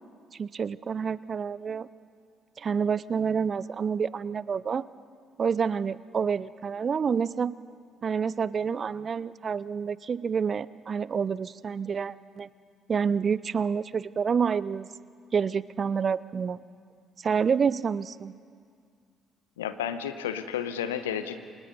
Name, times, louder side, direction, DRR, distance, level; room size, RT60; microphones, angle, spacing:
voice 1, 0.4-1.9 2.6-4.9 5.4-7.6 8.0-12.5 12.9-14.9 15.3-16.6 17.2-18.3, right 6 dB, 40° right, 19 dB, 0.5 m, -28 dB
voice 2, 19.6-21.4, left 9 dB, 80° left, 11 dB, 1.0 m, -32 dB
28.0 x 26.0 x 5.5 m, 2.1 s
figure-of-eight pair, 45°, 0 cm